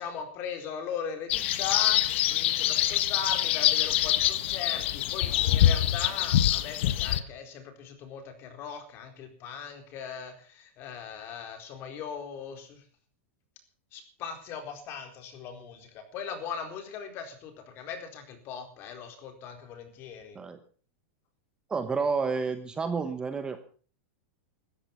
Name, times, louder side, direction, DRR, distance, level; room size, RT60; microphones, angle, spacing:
voice 1, 0.0-12.8 13.9-20.4, left 6 dB, 30° left, 6 dB, 4.2 m, -39 dB
sound 1, 1.3-7.2, left 12 dB, 60° left, 1.4 m, -25 dB
voice 2, 21.7-23.7, right 5 dB, 10° right, 9 dB, 1.1 m, -30 dB
16.0 x 14.0 x 5.9 m, 0.42 s
supercardioid pair, 160°, 7 cm